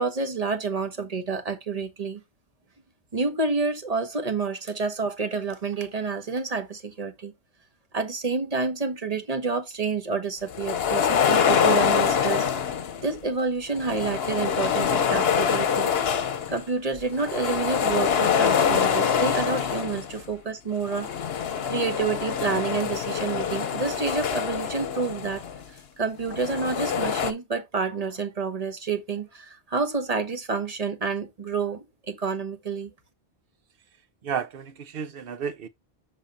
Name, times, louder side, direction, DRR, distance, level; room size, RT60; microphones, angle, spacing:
voice 1, 0.0-2.2 3.1-7.3 7.9-12.4 13.0-15.9 16.5-21.1 21.7-25.4 26.0-32.9, right 4 dB, 35° right, 1.1 m, -29 dB
sound 1, 10.5-13.1 13.7-16.6 17.0-20.2 20.8-25.6 26.2-27.3, left 7 dB, 70° left, 1.0 m, -25 dB
voice 2, 34.2-35.7, right 7 dB, 60° right, 1.0 m, -32 dB
7.1 x 3.9 x 3.9 m
omnidirectional pair, 1.1 m